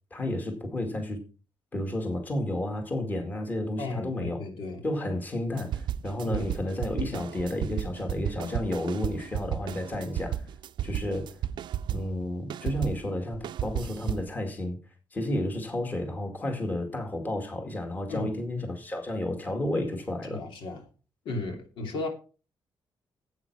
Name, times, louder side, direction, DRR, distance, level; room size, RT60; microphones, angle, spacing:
voice 1, 0.1-1.2 1.7-4.4 4.8-10.4 10.8-11.4 11.9-14.8 15.1-20.4, left 1 dB, 20° left, 2.1 m, -31 dB
voice 2, 3.8-4.8 6.2-6.5 18.1-18.3 20.3-20.8 21.2-22.1, left 2 dB, 80° left, 2.9 m, -35 dB
sound 1, 5.6-12.2 12.5-14.3, right 10 dB, 65° right, 0.5 m, -34 dB
12.0 x 8.5 x 4.7 m
cardioid pair, 180°, 9 cm